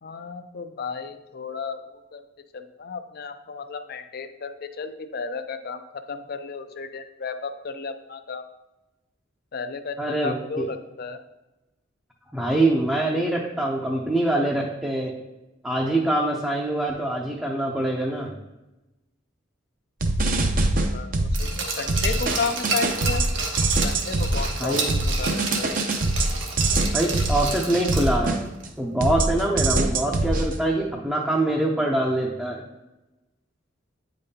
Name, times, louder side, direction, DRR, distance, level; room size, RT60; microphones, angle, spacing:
voice 1, 0.0-2.2 2.5-5.8 6.1-8.4 9.5-11.2 20.3-20.5 20.9-21.1 21.4-23.2 23.8-24.8 25.1-25.9, left 4 dB, 55° left, 9 dB, 0.5 m, -33 dB
voice 2, 10.0-10.7 12.3-15.1 15.6-18.3 24.6-24.9 26.7-28.4 28.8-32.6, right 1 dB, 5° right, -3 dB, 0.6 m, -24 dB
sound 1, 20.0-21.6 21.9-28.7 29.0-30.6, right 2 dB, 45° right, 0.6 m, -24 dB
Glass, 21.3-28.3 28.6-28.7, right 3 dB, 75° right, 1.1 m, -30 dB
8.8 x 5.3 x 2.8 m, 1.0 s
head